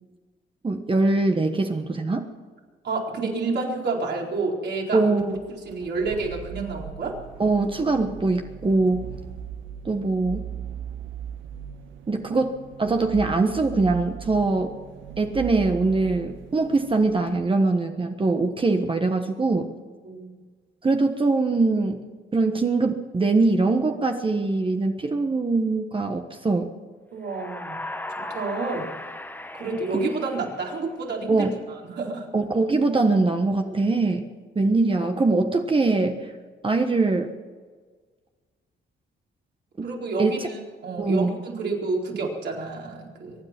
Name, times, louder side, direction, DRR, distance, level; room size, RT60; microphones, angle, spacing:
voice 1, 0.6-2.3 4.9-5.4 7.4-9.1 9.8-10.5 12.1-14.7 15.2-19.7 20.8-22.0 22.3-26.7 31.3-31.6 32.3-34.2 34.5-36.3 36.6-37.3 39.8-39.9 40.2-40.3 41.0-41.4, right 3 dB, 25° right, 5 dB, 1.3 m, -22 dB
voice 2, 2.8-5.1 5.5-7.2 20.0-20.3 27.1-27.8 28.2-28.9 29.5-32.3 39.8-43.4, right 3 dB, 60° right, -1 dB, 4.3 m, -29 dB
sound 1, 5.3-17.4, right 8 dB, 75° right, 1.5 m, -39 dB
sound 2, 27.2-31.1, left 1 dB, 10° left, 1.2 m, -37 dB
23.5 x 9.9 x 6.1 m, 1.5 s
cardioid pair, 90°, 20 cm